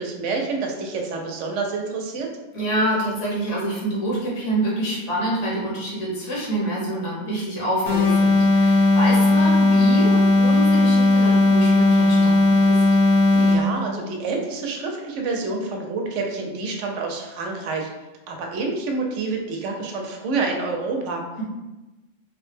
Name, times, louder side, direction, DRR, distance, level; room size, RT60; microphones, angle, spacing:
voice 1, 0.0-2.3 13.3-17.9 18.3-21.2, right 3 dB, 75° right, 1 dB, 0.9 m, -28 dB
voice 2, 2.5-12.8, right 1 dB, 75° left, -6 dB, 1.3 m, -26 dB
sound 1, 7.9-13.8, left 2 dB, 45° left, 0.7 m, -16 dB
3.2 x 2.0 x 3.2 m, 1.1 s
omnidirectional pair, 1.3 m